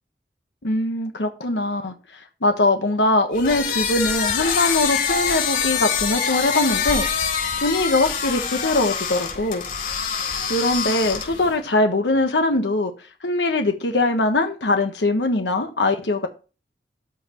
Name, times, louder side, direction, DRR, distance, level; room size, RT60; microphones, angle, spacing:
voice 1, 0.6-7.1 7.6-9.6 10.5-12.9 13.2-16.3, left 2 dB, 85° left, 1.2 m, -22 dB
sound 1, 3.3-11.5, left 6 dB, 55° left, 4.2 m, -25 dB
12.5 x 5.6 x 3.0 m
head